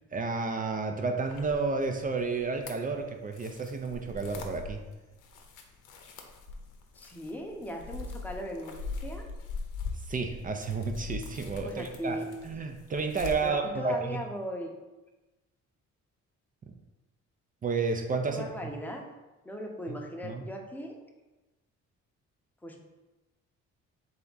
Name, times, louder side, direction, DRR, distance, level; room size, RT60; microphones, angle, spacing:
voice 1, 0.1-4.8 10.1-14.2 16.7-16.8 17.6-18.7 19.9-20.0 20.2-20.5, right 4 dB, 30° right, 5 dB, 0.4 m, -31 dB
sound 1, 1.2-13.5, left 4 dB, 85° left, 0.7 m, -42 dB
voice 2, 6.9-8.8 9.0-9.3 11.6-12.3 13.4-14.7 18.3-19.0 19.4-20.9 22.6-22.8, left 1 dB, 5° left, 1 dB, 0.7 m, -38 dB
3.5 x 3.4 x 3.9 m, 1.1 s
cardioid pair, 90°, 30 cm